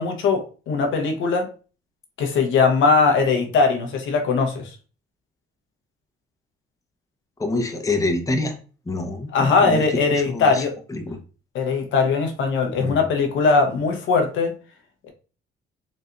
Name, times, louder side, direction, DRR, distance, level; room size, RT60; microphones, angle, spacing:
voice 1, 0.0-1.5 2.2-4.8 9.3-10.7 11.5-14.5, left 4 dB, 75° left, 4 dB, 0.9 m, -20 dB
voice 2, 7.4-8.6 8.9-9.8 10.1-10.6 10.9-11.2 12.8-13.0, left 2 dB, 15° left, 4 dB, 0.8 m, -26 dB
4.1 x 3.2 x 2.5 m, 0.35 s
cardioid pair, 90°, 20 cm